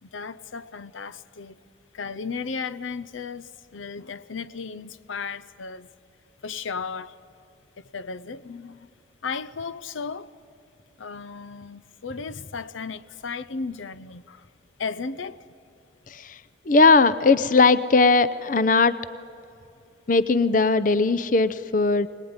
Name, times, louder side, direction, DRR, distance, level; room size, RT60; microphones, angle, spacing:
voice 1, 0.0-1.6 1.9-5.9 6.4-7.1 7.9-8.9 9.2-10.3 11.0-14.5 14.8-15.5, left 5 dB, 90° left, 0.7 m, -35 dB
voice 2, 16.1-16.4 16.7-18.9 20.1-22.1, left 3 dB, 45° left, 0.6 m, -19 dB
24.0 x 19.5 x 9.6 m
head